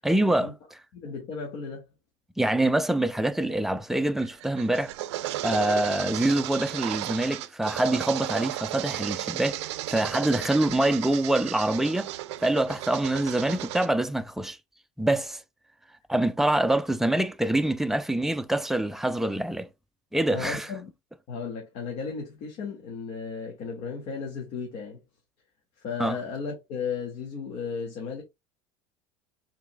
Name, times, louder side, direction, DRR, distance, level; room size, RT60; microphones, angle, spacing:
voice 1, 0.0-0.5 2.4-4.9 5.4-12.1 12.4-14.6 15.0-15.4 16.1-19.7 20.1-20.7 26.0-26.2, right 1 dB, ahead, 0.4 m, -25 dB
voice 2, 0.9-1.9 20.3-20.9 21.3-25.0 25.8-28.2, left 5 dB, 55° left, 1.9 m, -35 dB
sound 1, 4.2-13.9, right 15 dB, 85° right, 0.4 m, -34 dB
5.8 x 4.0 x 2.2 m
supercardioid pair, 110°, 14 cm